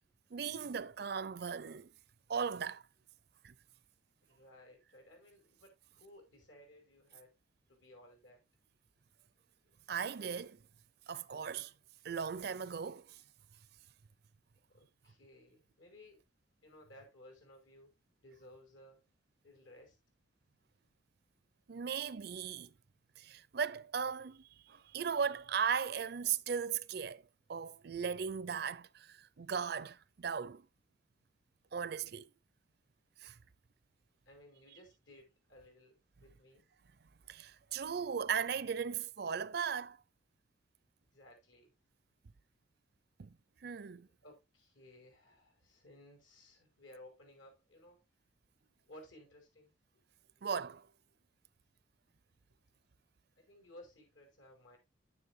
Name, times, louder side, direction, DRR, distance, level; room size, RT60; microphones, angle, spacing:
voice 1, 0.3-1.9 2.3-2.8 3.4-3.5 9.9-10.6 11.1-11.7 12.0-13.2 21.7-22.7 23.2-27.2 27.5-30.6 31.7-32.3 33.2-33.4 37.3-40.0 43.2-43.3 43.6-44.1 50.4-50.9, right 7 dB, 55° right, 0.4 m, -37 dB
voice 2, 4.2-7.3 7.7-8.4 14.7-16.2 16.6-17.9 18.2-19.0 19.4-20.0 34.3-36.7 41.1-41.7 44.0-48.0 48.9-49.7 53.4-54.8, left 1 dB, 80° left, 5.3 m, -58 dB
9.7 x 9.7 x 2.7 m
head